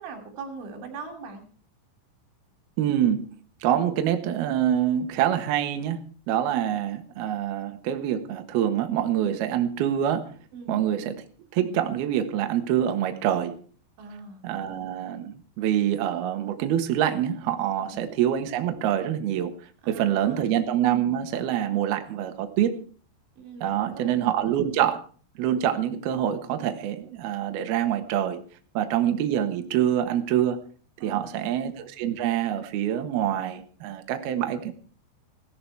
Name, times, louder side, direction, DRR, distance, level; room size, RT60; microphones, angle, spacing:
voice 1, 0.0-1.5 10.5-10.8 14.0-14.4 17.8-18.1 19.8-20.5 23.4-24.2 31.0-31.5, right 4 dB, 90° right, 5 dB, 5.5 m, -41 dB
voice 2, 2.8-3.3 3.6-10.3 10.7-11.1 11.5-13.6 14.4-19.5 19.9-22.8 23.6-25.0 25.4-28.4 28.7-30.6 31.0-34.7, right 10 dB, 65° right, 7 dB, 3.1 m, -25 dB
17.0 x 14.0 x 4.7 m, 0.42 s
omnidirectional pair, 5.2 m